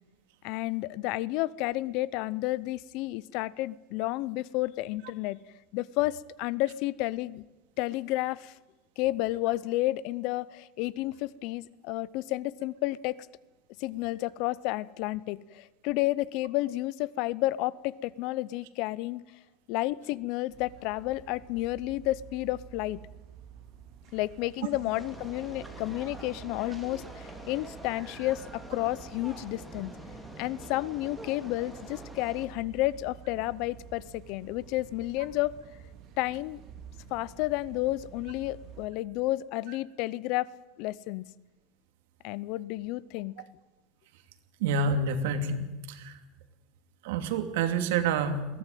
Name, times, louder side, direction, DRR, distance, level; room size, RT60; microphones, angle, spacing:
voice 1, 0.4-5.4 5.7-7.4 7.8-8.5 9.0-13.2 13.8-19.2 19.7-23.0 24.1-29.9 30.4-35.5 36.2-36.6 37.1-40.5 40.8-41.2 42.2-43.4, left 17 dB, 50° left, 21 dB, 0.6 m, -31 dB
sound 1, 20.5-38.9, right 9 dB, 35° right, 2.8 m, -50 dB
sound 2, 24.9-32.5, equal, ahead, 2.8 m, -46 dB
voice 2, 44.6-46.2 47.0-48.6, right 4 dB, 80° right, 7 dB, 2.8 m, -28 dB
21.5 x 16.5 x 9.3 m, 1.1 s
cardioid pair, 180°, 0 cm